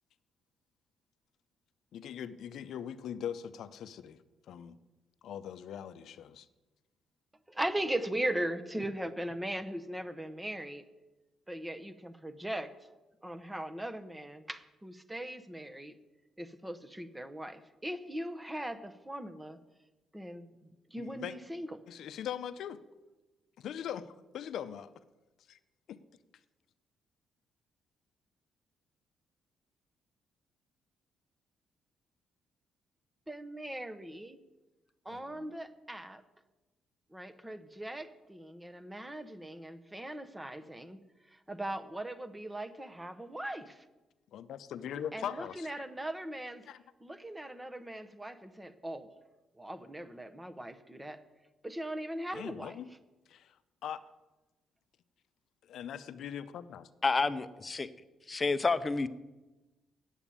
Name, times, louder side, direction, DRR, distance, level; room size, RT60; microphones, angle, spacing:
voice 1, 1.9-4.2 4.5-4.7 5.2-6.5 21.0-21.4 21.9-22.8 23.6-24.9 25.5-25.6 25.9-26.0 35.1-35.5 44.3-45.8 46.7-46.8 52.3-52.9 53.3-53.6 53.8-54.0 55.6-56.9, left 9 dB, 75° left, 12 dB, 0.5 m, -41 dB
voice 2, 7.5-10.8 11.5-12.7 13.2-16.0 16.4-19.6 20.1-20.5 20.9-21.8 33.3-34.4 35.0-36.2 37.1-41.0 41.3-43.8 45.1-46.6 47.0-49.1 49.6-51.2 51.6-52.8, right 1 dB, 10° right, 10 dB, 0.9 m, -39 dB
voice 3, 57.0-57.9 58.3-59.1, left 4 dB, 30° left, 12 dB, 0.6 m, -29 dB
9.1 x 7.1 x 8.5 m, 1.1 s
cardioid pair, 90°, 0 cm